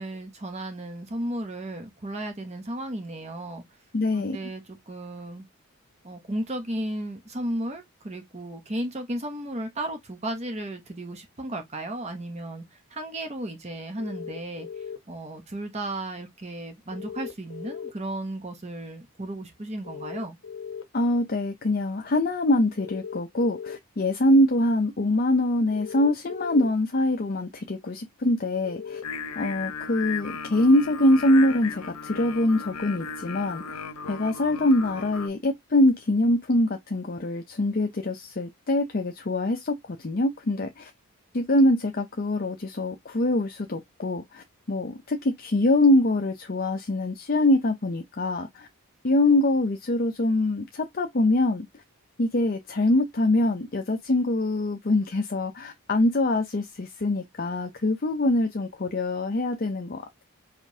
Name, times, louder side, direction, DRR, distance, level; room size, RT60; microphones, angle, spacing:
voice 1, 0.0-3.6 4.1-5.4 6.0-12.6 12.9-14.7 15.1-20.4, right 1 dB, 30° right, 0.9 m, -34 dB
voice 2, 3.9-4.4 20.9-29.0 29.4-33.8 34.1-40.9 41.3-48.7 49.0-51.7 52.2-60.2, left 1 dB, 40° left, 0.6 m, -24 dB
sound 1, 14.0-15.0 16.9-17.9 19.8-20.8 22.8-23.8 25.7-26.7 28.6-29.0, left 6 dB, 60° left, 0.9 m, -38 dB
Singing, 29.0-35.3, left 5 dB, 90° left, 0.7 m, -36 dB
5.0 x 3.2 x 2.7 m
head